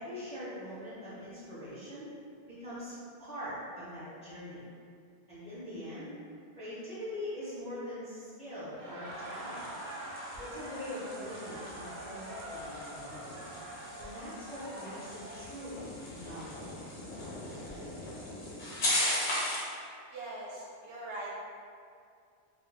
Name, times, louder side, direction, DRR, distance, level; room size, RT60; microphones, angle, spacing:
voice 1, 0.0-2.1 2.4-2.9 3.2-4.6 5.3-6.2 6.5-9.6 10.4-13.3 14.0-16.8, left 1 dB, 5° left, -12 dB, 0.7 m, -42 dB
Laughter, 8.7-15.5, right 1 dB, 50° right, 0.6 m, -44 dB
sound 1, 9.1-19.8, left 1 dB, 55° left, 0.7 m, -38 dB
voice 2, 20.1-21.4, right 2 dB, 80° right, -5 dB, 0.9 m, -41 dB
2.1 x 2.0 x 3.3 m, 2.3 s
omnidirectional pair, 1.2 m